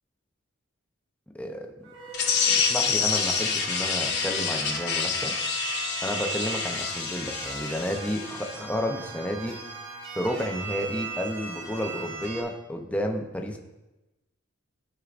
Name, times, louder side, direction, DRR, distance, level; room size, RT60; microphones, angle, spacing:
voice 1, 1.3-1.7 2.6-5.3 6.0-9.6 10.1-13.6, equal, 5° left, 2 dB, 0.7 m, -31 dB
sound 1, 1.8-12.4, right 3 dB, 60° right, 1.6 m, -38 dB
sound 2, 2.1-8.6, left 6 dB, 55° left, 1.0 m, -28 dB
13.0 x 4.6 x 2.5 m, 1.0 s
head